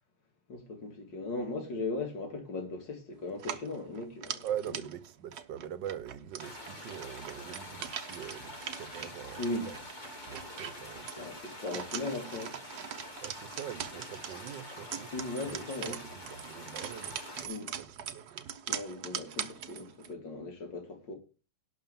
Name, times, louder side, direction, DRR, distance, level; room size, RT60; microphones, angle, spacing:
voice 1, 0.5-4.4 9.4-9.7 11.2-12.6 15.1-16.0 17.4-17.7 18.7-21.1, left 2 dB, 90° left, 3.2 m, -38 dB
sound 1, 3.3-20.1, right 9 dB, 65° right, 1.3 m, -42 dB
voice 2, 4.4-9.8 10.3-11.4 13.2-15.1 15.4-17.5 17.8-18.5, right 9 dB, 90° right, 1.6 m, -43 dB
sound 2, 6.4-17.5, left 1 dB, 25° left, 1.7 m, -46 dB
11.5 x 5.6 x 7.1 m
omnidirectional pair, 1.9 m